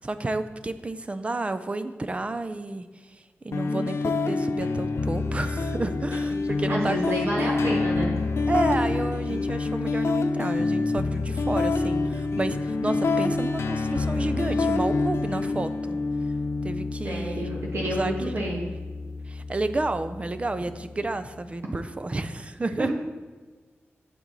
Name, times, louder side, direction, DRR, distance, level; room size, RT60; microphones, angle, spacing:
voice 1, 0.0-7.7 8.5-16.0 16.6-17.5 17.8-18.7 19.3-22.9, right 2 dB, 25° right, 11 dB, 0.4 m, -31 dB
sound 1, 3.5-21.5, left 3 dB, 70° left, 0.5 m, -27 dB
voice 2, 6.7-8.2 17.0-18.6 22.8-22.9, equal, 65° right, -3 dB, 1.6 m, -29 dB
8.9 x 7.6 x 4.0 m, 1.4 s
wide cardioid pair, 140°, 5 cm